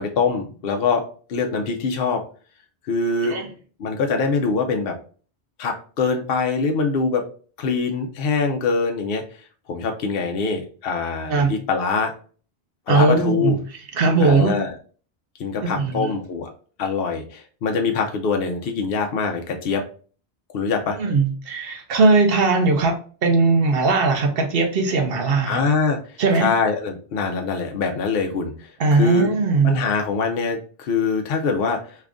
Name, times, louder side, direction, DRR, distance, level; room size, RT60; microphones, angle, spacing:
voice 1, 0.0-2.2 2.8-3.4 3.8-5.0 5.6-7.2 7.6-9.2 9.7-12.1 12.9-13.6 14.2-14.7 15.4-16.5 16.8-19.8 20.5-21.0 25.5-26.0 26.4-29.3 29.6-31.8, left 4 dB, 65° left, 3 dB, 0.8 m, -23 dB
voice 2, 12.9-13.6 13.9-14.6 15.6-16.1 21.0-22.9 23.2-25.6 26.2-26.5 28.8-29.7, right 3 dB, 65° right, 4 dB, 0.8 m, -19 dB
3.2 x 2.4 x 3.5 m, 0.40 s
omnidirectional pair, 1.1 m